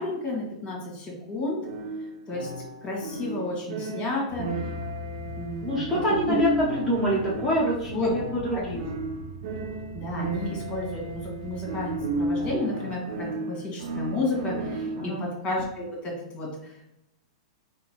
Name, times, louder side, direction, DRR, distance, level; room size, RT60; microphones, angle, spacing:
voice 1, 0.0-1.6 2.3-2.5 2.8-4.7 5.4-5.9 6.3-6.4 7.9-8.1 8.5-8.6 9.9-16.8, left 2 dB, 30° left, -2 dB, 1.5 m, -32 dB
sound 1, 1.6-15.2, right 2 dB, 65° right, 0.5 m, -33 dB
sound 2, 4.3-12.6, right 1 dB, 30° right, 1.1 m, -41 dB
voice 2, 5.6-8.9 14.9-15.2, equal, ahead, -9 dB, 0.9 m, -26 dB
3.7 x 2.0 x 3.0 m, 0.86 s
hypercardioid pair, 110°, 3 cm